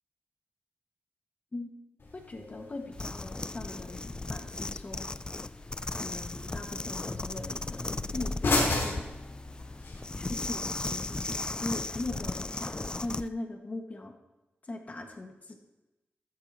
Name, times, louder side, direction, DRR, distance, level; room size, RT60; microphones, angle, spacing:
Pop up Toaster, 2.0-10.0, left 2 dB, 65° left, 4.1 m, -36 dB
voice 1, 2.1-5.1 5.9-7.9 8.1-9.0 10.1-12.7 13.0-14.2 14.6-15.5, left 2 dB, 35° left, 3 dB, 1.7 m, -40 dB
sound 1, 2.9-13.3, left 2 dB, 20° left, 0.3 m, -36 dB
13.5 x 13.0 x 3.0 m, 1.0 s
wide cardioid pair, 120°, 4 cm